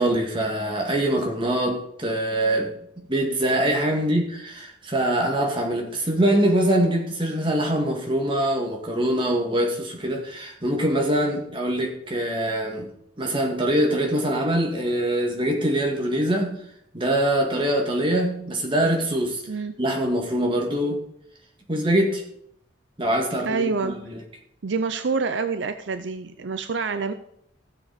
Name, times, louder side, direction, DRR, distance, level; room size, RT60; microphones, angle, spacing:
voice 1, 0.0-12.9 13.2-16.6 16.9-19.4 19.8-21.0 21.7-22.2 23.0-24.2, right 1 dB, 25° right, 1 dB, 2.0 m, -23 dB
voice 2, 23.5-24.0 24.6-27.1, right 4 dB, 70° right, 10 dB, 0.6 m, -27 dB
15.5 x 7.3 x 4.1 m, 0.72 s
head